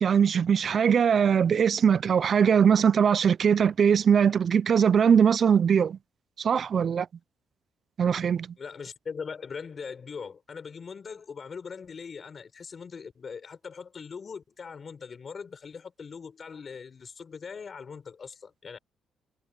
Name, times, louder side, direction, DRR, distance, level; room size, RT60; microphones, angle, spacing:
voice 1, 0.0-6.0 6.4-7.1 8.0-8.5, right 7 dB, 50° right, 0.4 m, -21 dB
voice 2, 8.6-18.8, left 5 dB, 45° left, 4.6 m, -41 dB
cardioid pair, 90°, 0 cm